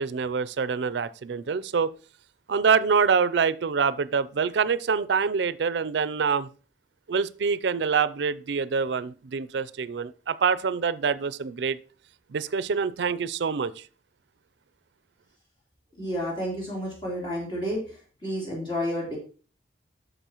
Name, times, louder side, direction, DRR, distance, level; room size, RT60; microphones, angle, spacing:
voice 1, 0.0-1.9 2.5-6.5 7.1-11.8 12.3-13.7, right 5 dB, 75° right, 0.4 m, -25 dB
voice 2, 16.0-17.8 18.2-19.2, equal, 25° left, 3.3 m, -30 dB
10.0 x 6.6 x 2.9 m
head